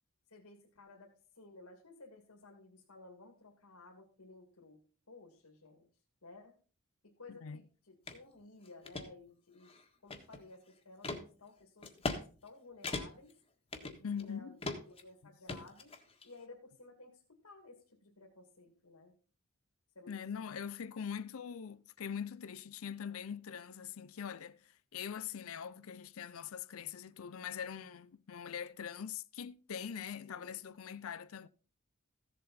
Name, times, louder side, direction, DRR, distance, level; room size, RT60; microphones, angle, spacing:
voice 1, 0.3-4.8 5.1-5.9 6.2-6.6 7.0-13.3 13.8-15.9 16.2-19.1 19.9-20.5 30.3-30.6, left 3 dB, 90° left, 2.6 m, -56 dB
voice 2, 7.3-7.6 14.0-14.6 20.1-31.5, left 7 dB, 70° left, 0.5 m, -43 dB
sound 1, 8.1-8.2 8.6-9.1 9.6-10.5 11.0-11.2 11.8-12.2 12.5-12.6 12.8-13.3 13.7-14.3 14.6-15.0 15.5-16.3, left 2 dB, 25° left, 1.6 m, -39 dB
15.0 x 7.6 x 4.2 m
head